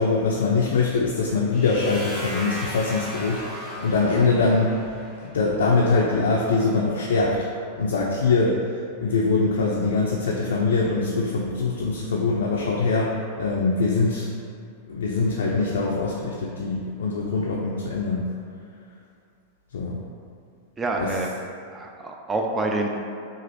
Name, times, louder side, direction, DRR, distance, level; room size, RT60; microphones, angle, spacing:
voice 1, 0.0-4.7 5.2-7.5 7.8-8.6 9.0-14.3 14.9-18.3 19.7-20.0 21.0-21.1, left 3 dB, 75° left, -3 dB, 0.3 m, -23 dB
sound 1, 1.5-5.4, equal, 10° left, 1.1 m, -36 dB
voice 2, 20.8-21.3 21.7-23.0, right 2 dB, 20° right, 1 dB, 0.4 m, -27 dB
2.9 x 2.4 x 2.9 m, 2.4 s
hypercardioid pair, 100°, 0 cm